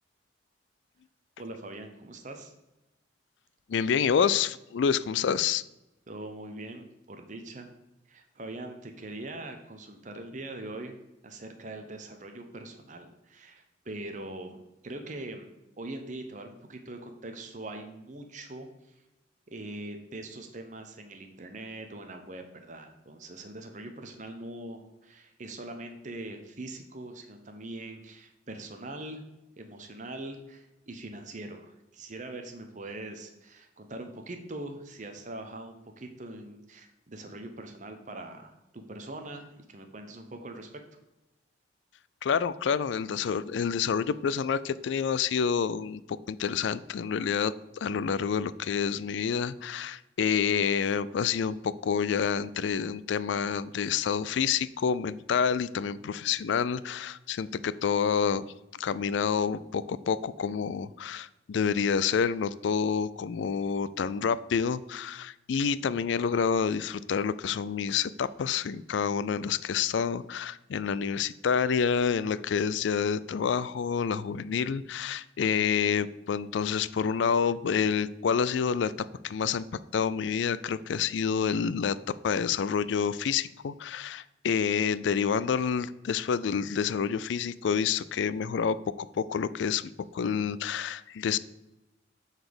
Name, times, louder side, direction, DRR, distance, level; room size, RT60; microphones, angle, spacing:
voice 1, 1.4-2.5 6.1-7.7 8.1-11.0 11.2-15.5 15.8-19.0 19.5-29.2 29.6-40.8, right 2 dB, 40° right, 5 dB, 0.8 m, -42 dB
voice 2, 3.7-5.6 42.2-58.4 58.7-78.9 79.2-79.7 79.9-82.0 82.2-91.4, left 6 dB, 75° left, 17 dB, 0.4 m, -28 dB
7.9 x 4.1 x 6.9 m, 0.96 s
head